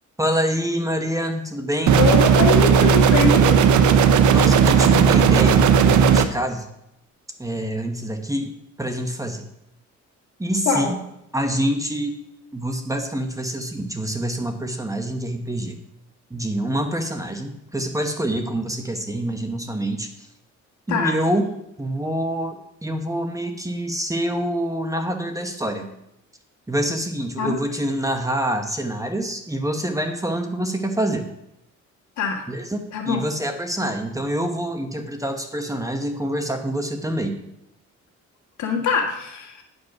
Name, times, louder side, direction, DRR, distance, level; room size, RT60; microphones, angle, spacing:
voice 1, 0.2-2.0 4.3-6.6 7.4-8.5 8.8-9.4 10.4-11.0 11.3-12.1 12.5-15.8 16.3-20.1 20.9-21.5 21.8-25.9 26.7-31.2 32.5-37.4, right 1 dB, 10° right, 5 dB, 1.2 m, -26 dB
sound 1, 1.9-6.3, right 7 dB, 75° right, 0.7 m, -15 dB
voice 2, 2.0-3.6 10.7-10.9 20.9-21.2 27.4-27.6 32.2-32.4 32.9-33.2 38.6-39.6, left 5 dB, 70° left, 1 dB, 2.0 m, -23 dB
10.0 x 5.3 x 6.0 m, 0.81 s
cardioid pair, 90°, 30 cm